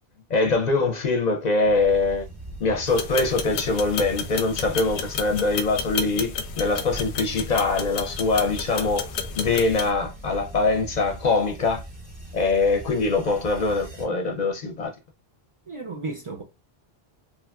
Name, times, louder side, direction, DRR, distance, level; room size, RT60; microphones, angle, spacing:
voice 1, 0.3-2.3 2.6-9.1 9.4-11.8 12.3-14.9, left 3 dB, 55° left, 0.5 m, -23 dB
sound 1, 1.6-14.1, right 1 dB, 10° right, 0.7 m, -40 dB
sound 2, 2.9-9.9, left 6 dB, 90° left, 0.8 m, -32 dB
voice 2, 15.7-16.4, right 3 dB, 55° right, 0.3 m, -34 dB
2.9 x 2.4 x 2.3 m
omnidirectional pair, 1.1 m